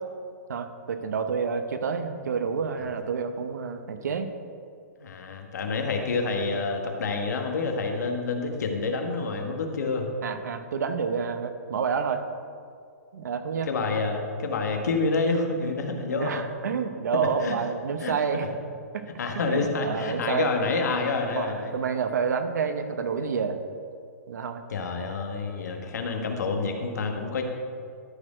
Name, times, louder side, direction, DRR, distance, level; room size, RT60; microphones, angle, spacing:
voice 1, 0.5-4.3 10.2-12.2 13.1-13.7 16.1-18.5 18.9-19.1 19.4-20.5 21.3-23.6 24.3-24.6, right 6 dB, 90° right, 8 dB, 0.8 m, -29 dB
voice 2, 5.0-10.1 13.7-16.3 17.1-17.5 18.0-18.5 19.2-21.7 24.7-27.4, left 4 dB, 85° left, 3 dB, 1.4 m, -28 dB
13.0 x 4.5 x 4.9 m, 2.3 s
hypercardioid pair, 175°, 9 cm